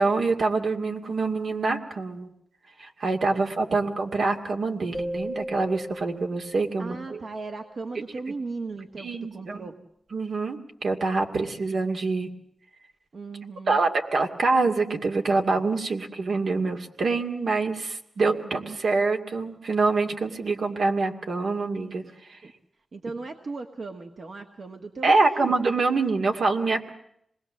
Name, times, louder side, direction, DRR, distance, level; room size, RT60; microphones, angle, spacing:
voice 1, 0.0-2.3 2.8-7.2 9.0-9.7 10.1-12.3 13.7-22.0 22.3-22.4 25.0-26.9, right 3 dB, 80° right, 2 dB, 2.3 m, -25 dB
sound 1, 4.9-7.6, equal, 15° right, 1.1 m, -37 dB
voice 2, 6.8-9.7 13.1-13.8 18.4-18.8 22.4-22.5 22.9-25.5, right 3 dB, 65° right, 3 dB, 1.6 m, -37 dB
26.0 x 20.5 x 7.4 m, 0.71 s
wide cardioid pair, 95°, 0 cm